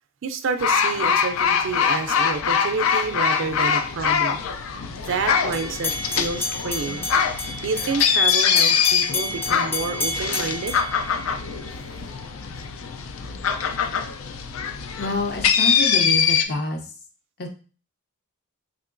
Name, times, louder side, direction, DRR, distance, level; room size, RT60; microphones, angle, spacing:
voice 1, 0.2-4.4 5.1-7.1 7.6-10.7, right 4 dB, 65° right, 8 dB, 0.4 m, -29 dB
sound 1, 0.6-16.4, left 7 dB, 90° left, 0.4 m, -23 dB
sound 2, 5.5-11.8, left 2 dB, 10° left, 0.4 m, -31 dB
voice 2, 15.0-16.8 17.4-17.5, left 1 dB, 50° left, 3 dB, 0.6 m, -27 dB
3.6 x 2.9 x 2.5 m, 0.38 s
head